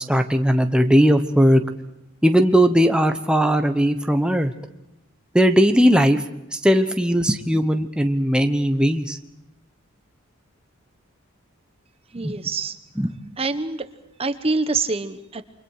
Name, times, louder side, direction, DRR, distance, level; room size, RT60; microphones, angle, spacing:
voice 1, 0.0-1.6 2.2-4.5 5.3-6.2 6.5-9.2 12.2-12.4 13.0-13.1, equal, 5° right, 6 dB, 1.1 m, -18 dB
voice 2, 12.1-12.8 13.4-13.9 14.2-15.4, right 3 dB, 30° right, 10 dB, 1.0 m, -25 dB
29.0 x 24.5 x 4.9 m, 0.85 s
head